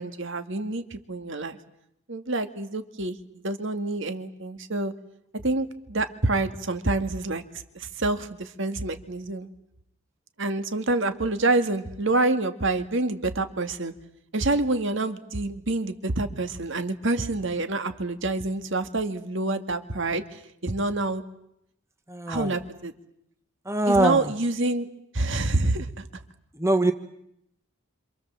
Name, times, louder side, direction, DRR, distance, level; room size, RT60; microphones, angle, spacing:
voice 1, 0.0-1.6 2.1-3.2 3.4-4.9 5.3-7.4 7.7-9.5 10.4-13.9 14.3-21.2 22.3-22.9 23.9-24.9 25.1-26.2, right 2 dB, 60° right, 9 dB, 2.1 m, -27 dB
voice 2, 22.1-22.5 23.7-24.3 26.6-26.9, right 1 dB, 15° right, 8 dB, 1.1 m, -22 dB
27.5 x 27.0 x 7.6 m, 0.76 s
head